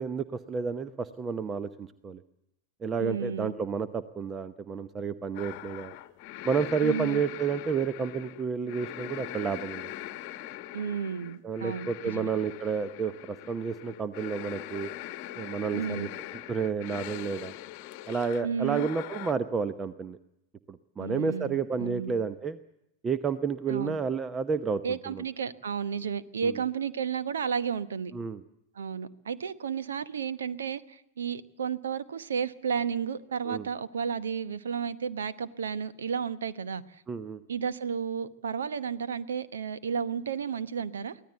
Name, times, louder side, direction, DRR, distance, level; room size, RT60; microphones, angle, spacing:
voice 1, 0.0-2.2 2.8-5.9 6.4-9.9 11.4-14.9 15.4-16.1 16.5-17.5 18.1-20.2 20.7-22.6 23.0-25.2 26.4-26.6 28.1-28.4 33.5-33.7 37.1-37.4, right 5 dB, 20° right, 13 dB, 0.8 m, -31 dB
voice 2, 3.0-3.5 6.8-7.2 10.7-12.3 15.7-16.1 18.4-18.9 21.0-22.1 23.7-24.0 24.8-28.1 28.7-37.0 37.5-41.2, right 7 dB, 65° right, 14 dB, 1.0 m, -32 dB
sound 1, 5.3-19.3, left 14 dB, 45° left, 1.1 m, -42 dB
24.0 x 17.0 x 8.0 m, 0.84 s
figure-of-eight pair, 90°, 0 cm